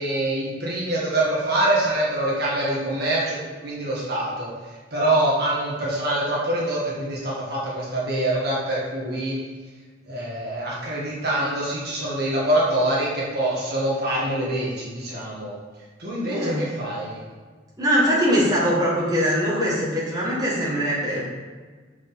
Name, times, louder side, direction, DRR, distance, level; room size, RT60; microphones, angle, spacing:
voice 1, 0.0-3.4 3.6-4.5 4.9-9.4 10.1-15.5 16.0-17.2, right 1 dB, 55° right, -5 dB, 1.6 m, -25 dB
voice 2, 16.2-16.6 17.8-21.3, equal, 20° right, -7 dB, 1.9 m, -22 dB
6.0 x 5.0 x 5.7 m, 1.4 s
head